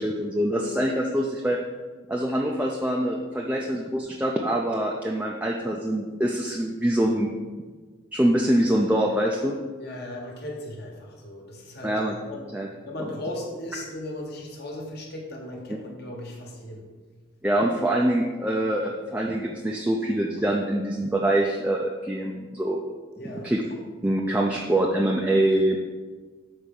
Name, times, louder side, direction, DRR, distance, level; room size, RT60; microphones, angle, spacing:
voice 1, 0.0-1.6 2.1-7.3 8.1-9.6 11.8-12.2 12.5-12.7 17.4-22.8 23.4-23.6 24.0-25.8, right 1 dB, 5° right, -1 dB, 0.3 m, -24 dB
voice 2, 9.8-12.5 12.8-16.9 23.2-23.5, left 1 dB, 50° left, 0 dB, 1.3 m, -37 dB
6.3 x 4.3 x 5.2 m, 1.4 s
head